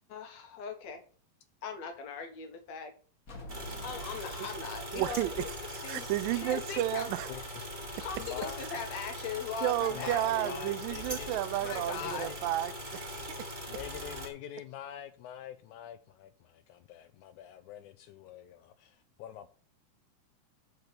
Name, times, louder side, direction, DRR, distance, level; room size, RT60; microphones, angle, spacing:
voice 1, 0.1-1.0 1.6-2.9 3.8-5.5 5.8-6.1 6.3-7.1 7.3-7.4 8.0-10.6 11.6-12.3, left 5 dB, 60° left, 2.2 m, -39 dB
sound 1, 3.3-6.7, right 1 dB, 35° left, 1.6 m, -48 dB
sound 2, 3.5-14.3, equal, 15° right, 2.0 m, -41 dB
voice 2, 4.9-5.5 5.9-7.3 9.6-13.5, right 14 dB, 85° right, 2.2 m, -32 dB
voice 3, 7.3-7.7 8.2-8.8 9.9-11.4 12.0-12.5 13.7-19.5, left 10 dB, 80° left, 1.8 m, -45 dB
6.8 x 6.6 x 6.5 m
omnidirectional pair, 3.9 m